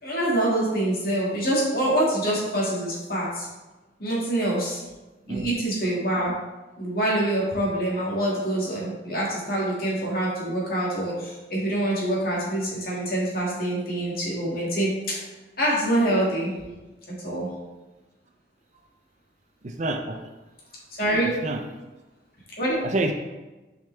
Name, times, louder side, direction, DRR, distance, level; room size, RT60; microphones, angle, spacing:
voice 1, 0.0-3.5 4.0-4.8 5.3-6.3 6.8-15.2 15.6-16.5 17.2-17.5 21.0-21.3 22.6-22.8, right 1 dB, 55° left, -5 dB, 2.0 m, -25 dB
voice 2, 19.6-20.2 21.4-21.6 22.8-23.1, right 2 dB, 40° right, 4 dB, 0.6 m, -27 dB
6.4 x 5.1 x 3.4 m, 1.1 s
head